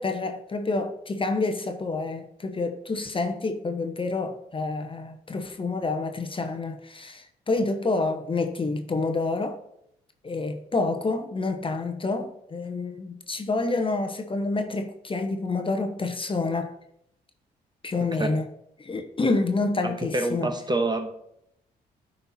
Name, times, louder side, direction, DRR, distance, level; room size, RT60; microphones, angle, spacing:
voice 1, 0.0-9.6 10.2-16.7 17.8-18.5 18.8-20.5, left 3 dB, 30° left, 0.9 m, -28 dB
voice 2, 19.8-21.1, right 2 dB, 25° right, 1.2 m, -27 dB
10.0 x 4.4 x 4.2 m
supercardioid pair, 60°, 18 cm